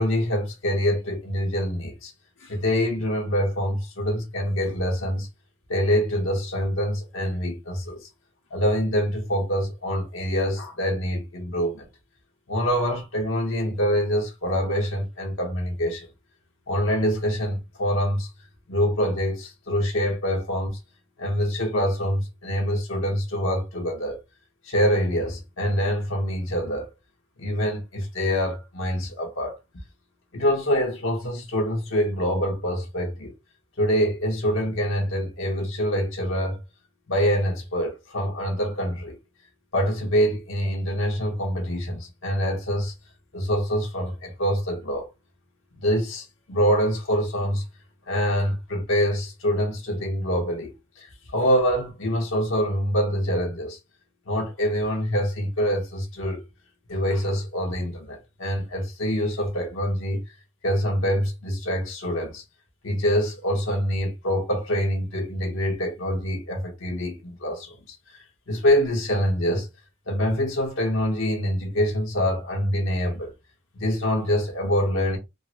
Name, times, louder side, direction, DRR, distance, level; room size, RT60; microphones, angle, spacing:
voice 1, 0.0-2.1 2.4-5.3 5.7-8.1 8.5-11.9 12.5-16.1 16.7-18.3 18.7-20.8 21.2-24.2 24.6-26.9 27.4-29.6 30.3-33.3 33.8-36.6 37.1-39.2 39.7-42.9 43.3-45.1 45.8-47.6 48.1-53.8 54.3-56.4 56.9-60.2 60.6-62.4 62.8-69.7 70.1-73.3 73.8-75.2, equal, 75° left, 1.1 m, -25 dB
3.6 x 2.1 x 2.8 m
head